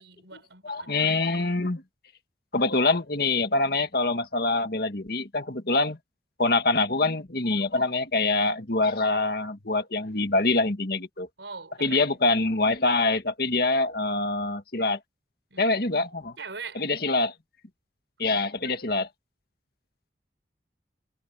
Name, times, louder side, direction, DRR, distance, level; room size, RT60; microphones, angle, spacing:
voice 1, 0.0-1.1 11.4-12.2 15.5-15.8 16.4-16.9, right 4 dB, 90° right, 5.6 m, -42 dB
voice 2, 0.6-1.8 2.5-6.0 6.4-11.3 11.8-15.0 15.6-16.4 16.8-17.3 18.2-19.1, left 3 dB, 55° left, 1.8 m, -25 dB
head